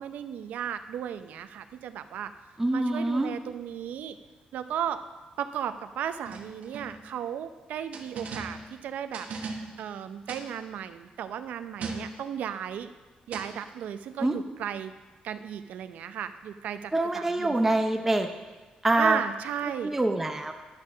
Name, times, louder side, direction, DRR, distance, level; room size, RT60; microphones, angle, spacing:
voice 1, 0.0-2.3 2.7-4.2 4.5-5.0 5.4-9.3 9.8-12.9 13.3-14.9 15.2-17.7 19.0-19.9, right 9 dB, 80° right, 10 dB, 0.6 m, -35 dB
voice 2, 2.6-3.3 14.2-14.4 16.9-18.3 18.8-19.2 19.8-20.5, right 2 dB, 10° right, 4 dB, 0.6 m, -25 dB
sound 1, 6.3-7.1 7.9-8.8 9.1-9.9 10.3-10.5 11.8-12.3 13.3-13.6, right 4 dB, 60° right, 1.2 m, -38 dB
10.5 x 6.5 x 6.2 m, 1.3 s
cardioid pair, 150°, 3 cm